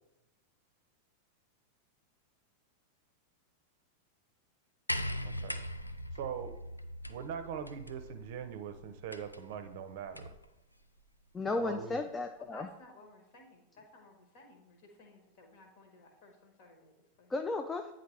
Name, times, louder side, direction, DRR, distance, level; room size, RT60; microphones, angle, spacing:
sound 1, 4.9-10.5 11.6-11.7, equal, 85° left, 0.4 m, -41 dB
voice 1, 5.2-5.6 6.1-6.6 7.1-10.3 11.6-12.0, right 8 dB, 50° right, 8 dB, 0.6 m, -41 dB
voice 2, 11.3-12.7 17.3-17.9, left 3 dB, 15° left, 5 dB, 0.4 m, -34 dB
voice 3, 12.4-17.4, left 2 dB, 50° left, 3 dB, 1.5 m, -57 dB
9.2 x 3.9 x 3.3 m, 0.92 s
figure-of-eight pair, 90°, 0 cm